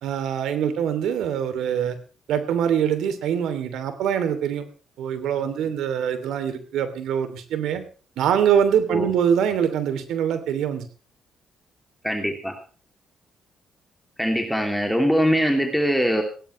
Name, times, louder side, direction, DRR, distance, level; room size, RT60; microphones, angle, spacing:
voice 1, 0.0-2.0 2.3-4.6 5.0-7.8 8.2-10.9, right 8 dB, 80° right, 10 dB, 2.9 m, -23 dB
voice 2, 12.0-12.5 14.2-16.2, equal, ahead, 3 dB, 2.8 m, -22 dB
19.0 x 17.0 x 3.2 m, 0.39 s
cardioid pair, 90°, 0 cm